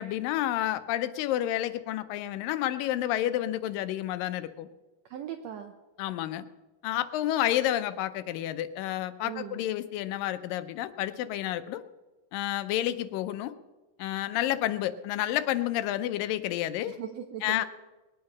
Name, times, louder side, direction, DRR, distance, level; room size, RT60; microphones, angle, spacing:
voice 1, 0.0-4.7 6.0-6.5 6.8-11.8 12.3-13.5 14.0-16.9 17.4-17.7, left 13 dB, 85° left, 12 dB, 2.3 m, -30 dB
voice 2, 5.0-5.7 9.2-9.6 16.9-17.6, right 9 dB, 80° right, 6 dB, 1.5 m, -39 dB
20.0 x 9.5 x 6.0 m, 1.1 s
omnidirectional pair, 3.9 m